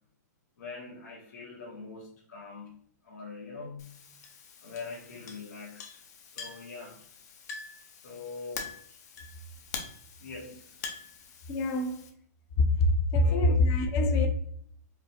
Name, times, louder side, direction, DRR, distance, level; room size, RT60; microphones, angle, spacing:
voice 1, 0.6-2.7 3.0-4.0 4.6-7.0 8.0-8.8 10.2-10.9 13.2-13.6, left 4 dB, 90° left, 1.0 m, -43 dB
Chink clink, 3.8-12.1, left 5 dB, 65° left, 0.7 m, -45 dB
voice 2, 11.5-12.0 12.6-14.3, left 2 dB, 30° left, 0.5 m, -24 dB
4.9 x 2.0 x 2.8 m
hypercardioid pair, 150°, 10 cm